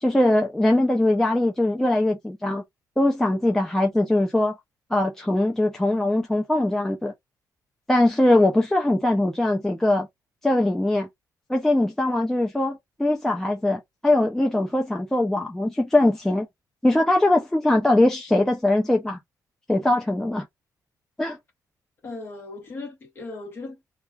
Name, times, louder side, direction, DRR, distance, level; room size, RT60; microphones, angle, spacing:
voice 1, 0.0-2.6 3.0-4.6 4.9-7.1 7.9-10.1 10.4-11.1 11.5-16.5 16.8-19.2 19.7-20.4 21.2-21.4, left 1 dB, 5° left, 0.4 m, -21 dB
voice 2, 22.0-23.9, left 3 dB, 30° left, 1.1 m, -37 dB
2.3 x 2.3 x 3.1 m
cardioid pair, 175°, 7 cm